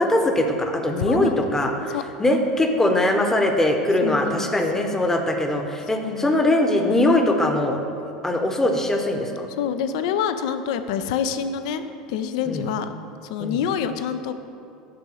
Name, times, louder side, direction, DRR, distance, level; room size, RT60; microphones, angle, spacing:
voice 1, 0.0-1.7 2.2-7.8 8.2-9.5 12.5-12.7 13.4-13.6, left 1 dB, 10° left, 4 dB, 0.8 m, -21 dB
voice 2, 1.1-1.4 1.9-2.0 4.0-4.6 4.9-5.0 6.0-6.4 9.6-11.8 12.1-12.9 13.3-14.3, left 8 dB, 60° left, 10 dB, 0.4 m, -27 dB
6.7 x 4.5 x 6.5 m, 2.5 s
figure-of-eight pair, 75°, 4 cm